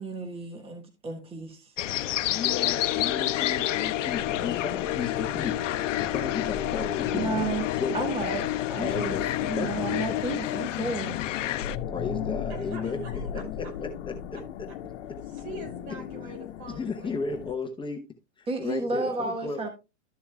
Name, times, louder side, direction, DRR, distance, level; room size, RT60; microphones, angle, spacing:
voice 1, 0.0-1.7 7.1-8.4 8.7-11.2 18.5-19.7, right 3 dB, 15° right, 1.5 m, -32 dB
sound 1, 1.8-11.8, left 13 dB, 90° left, 0.6 m, -31 dB
voice 2, 2.3-5.6 6.0-7.5 7.8-8.1 8.8-9.2 9.5-9.7 11.9-13.9 16.7-18.0 18.4-19.7, left 5 dB, 15° left, 0.8 m, -34 dB
sound 2, 2.5-10.7, left 14 dB, 35° left, 0.5 m, -32 dB
sound 3, 4.1-17.5, left 9 dB, 60° left, 1.1 m, -37 dB
voice 3, 12.5-13.4 15.3-17.2, right 2 dB, 65° right, 4.8 m, -43 dB
13.0 x 7.0 x 2.3 m
hypercardioid pair, 130°, 36 cm